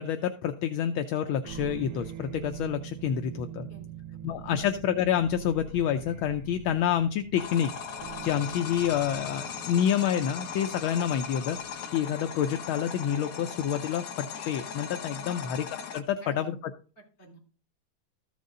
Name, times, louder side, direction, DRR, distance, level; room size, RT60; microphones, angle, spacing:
voice 1, 0.0-3.7 4.2-7.7 8.2-15.7 15.9-16.6, left 9 dB, 75° left, 7 dB, 1.4 m, -28 dB
sound 1, 1.4-12.8, right 10 dB, 80° right, 1.4 m, -44 dB
voice 2, 3.7-4.0 4.4-4.6 15.2-15.4 16.2-16.6 17.0-17.4, right 1 dB, 25° left, -1 dB, 4.4 m, -49 dB
sound 2, 7.4-16.0, left 7 dB, 55° left, 1.0 m, -39 dB
14.0 x 5.4 x 3.7 m, 0.37 s
omnidirectional pair, 2.3 m